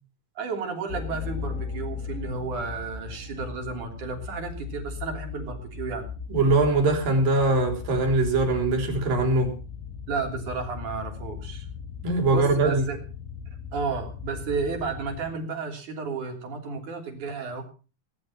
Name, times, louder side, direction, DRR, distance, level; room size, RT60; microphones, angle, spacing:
voice 1, 0.4-6.1 10.1-11.7 12.3-13.0 13.7-17.7, right 4 dB, 65° right, 4 dB, 4.7 m, -32 dB
sound 1, 0.9-15.3, left 5 dB, 85° left, 4.1 m, -37 dB
voice 2, 6.3-9.5 12.0-12.8, right 2 dB, 90° right, 5 dB, 5.3 m, -22 dB
18.5 x 11.0 x 5.9 m, 0.37 s
omnidirectional pair, 3.9 m